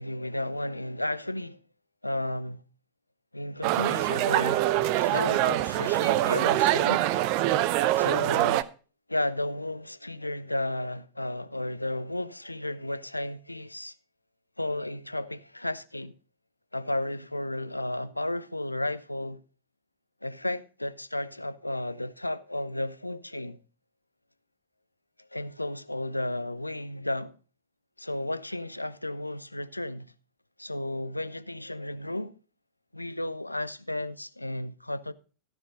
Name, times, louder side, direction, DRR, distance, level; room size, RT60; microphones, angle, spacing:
voice 1, 0.0-1.6 2.0-2.6 3.3-4.6 5.0-7.1 8.0-8.7 9.1-13.9 14.6-16.1 16.7-19.4 20.2-23.6 25.3-27.3 28.0-30.1 30.6-32.4 32.9-35.1, left 1 dB, 85° left, 0.5 m, -33 dB
sound 1, 3.6-8.6, right 14 dB, 45° right, 0.6 m, -24 dB
14.0 x 6.1 x 5.1 m
figure-of-eight pair, 90°, 0 cm